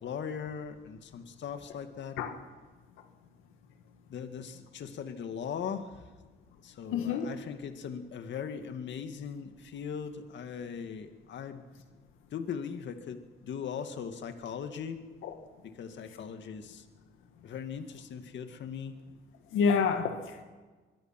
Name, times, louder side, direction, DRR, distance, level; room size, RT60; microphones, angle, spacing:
voice 1, 0.0-2.2 4.1-6.1 6.6-11.7 12.3-15.0 15.6-16.8 17.4-19.0, left 7 dB, 65° left, 7 dB, 2.1 m, -39 dB
voice 2, 6.9-7.3 15.2-15.3 19.5-20.4, left 6 dB, 90° left, 6 dB, 1.9 m, -28 dB
24.0 x 23.0 x 6.0 m, 1.3 s
cardioid pair, 90°, 20 cm